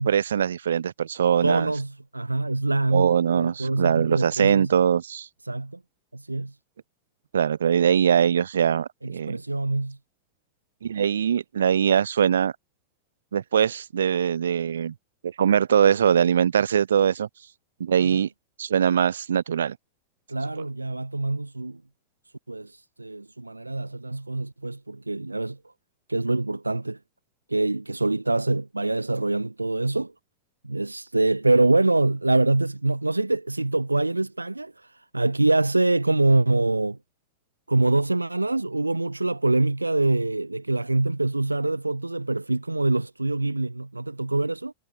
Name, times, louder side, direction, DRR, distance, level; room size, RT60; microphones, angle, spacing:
voice 1, 0.0-1.7 2.9-5.3 7.3-9.4 10.8-12.5 13.3-14.9 15.2-17.3 17.8-18.3 18.6-19.8, right 8 dB, 65° right, 3.2 m, -22 dB
voice 2, 1.4-4.8 5.4-5.8 6.1-6.5 9.0-10.0 18.0-18.3 20.3-21.8 22.5-25.6 26.1-27.0 27.5-30.1 30.6-37.0 37.7-44.7, right 2 dB, 85° right, 4.8 m, -25 dB
figure-of-eight pair, 90°, 0 cm